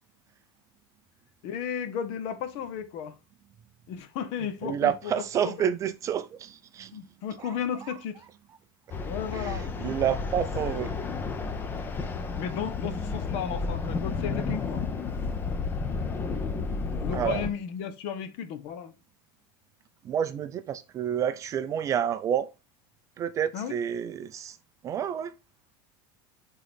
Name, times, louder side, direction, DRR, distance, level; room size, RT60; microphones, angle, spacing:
voice 1, 1.4-3.1 3.9-5.7 6.9-8.2 9.1-9.7 12.4-14.9 17.0-18.9 23.5-23.7, left 8 dB, 55° left, 1.0 m, -34 dB
voice 2, 4.6-6.9 7.4-7.5 7.8-7.9 9.3-10.9 17.1-17.5 20.0-22.5 23.2-24.6 24.8-25.3, right 9 dB, 25° right, 0.4 m, -29 dB
sound 1, 8.9-17.5, left 4 dB, 15° left, 0.6 m, -32 dB
8.8 x 3.8 x 3.5 m
supercardioid pair, 155°, 12 cm